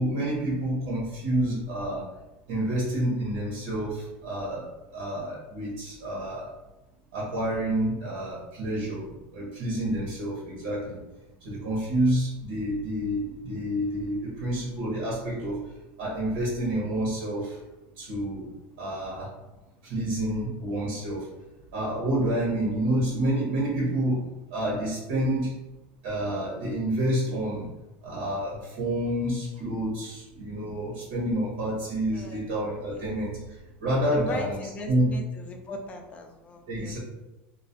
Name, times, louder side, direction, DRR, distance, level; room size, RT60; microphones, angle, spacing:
voice 1, 0.0-2.0 2.5-6.5 7.1-11.0 11.4-15.6 16.0-17.6 18.0-18.5 18.8-19.3 19.8-21.3 21.7-24.2 24.5-25.5 26.0-27.7 28.0-33.4 33.8-34.6 34.9-35.1 36.7-37.0, right 1 dB, 80° right, -5 dB, 0.9 m, -28 dB
voice 2, 32.1-32.4 32.8-33.2 34.1-37.0, left 2 dB, 25° left, 3 dB, 0.3 m, -39 dB
2.3 x 2.1 x 2.6 m, 1.0 s
supercardioid pair, 140°, 6 cm